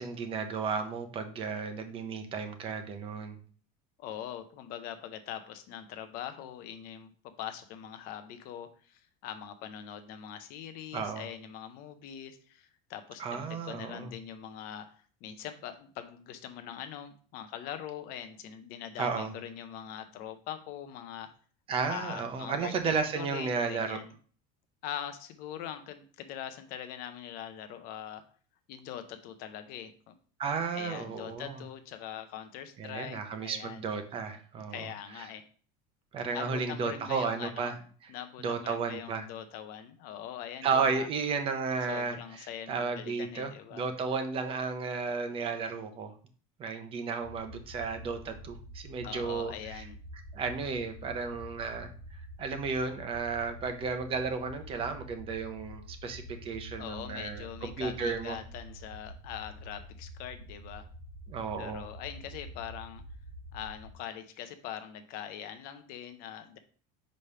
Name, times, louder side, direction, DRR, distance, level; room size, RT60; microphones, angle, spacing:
voice 1, 0.0-3.4 10.9-11.3 13.2-14.1 19.0-19.3 21.7-24.0 30.4-31.6 32.8-34.9 35.2-35.3 36.1-37.7 38.4-39.2 40.6-46.1 46.6-49.9 50.3-51.9 52.4-58.4 61.3-61.9, right 5 dB, 30° right, 7 dB, 0.8 m, -33 dB
voice 2, 4.0-21.3 21.9-24.1 24.8-28.3 28.7-30.1 30.7-33.9 34.7-35.4 36.3-37.8 38.1-41.1 41.9-43.8 49.0-50.0 56.8-60.9 61.6-63.0 63.5-66.6, left 10 dB, 50° left, 9 dB, 0.7 m, -42 dB
sound 1, 47.2-63.9, equal, 70° right, 1.4 m, -47 dB
5.2 x 3.3 x 5.6 m, 0.43 s
cardioid pair, 165°, 19 cm